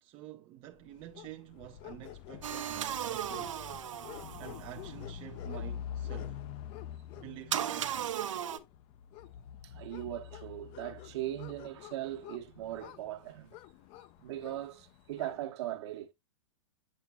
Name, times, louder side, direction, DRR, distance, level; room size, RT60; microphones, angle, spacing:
voice 1, 0.0-3.6 4.4-6.4 7.1-8.1, right 14 dB, 30° right, 0.5 m, -48 dB
sound 1, 0.9-15.4, left 9 dB, 35° left, 0.5 m, -46 dB
sound 2, 2.4-4.9 7.5-8.6, right 10 dB, 75° right, 0.8 m, -36 dB
voice 2, 9.6-13.6 14.2-16.1, right 13 dB, 60° right, 1.1 m, -39 dB
7.3 x 7.0 x 2.2 m
hypercardioid pair, 120°, 16 cm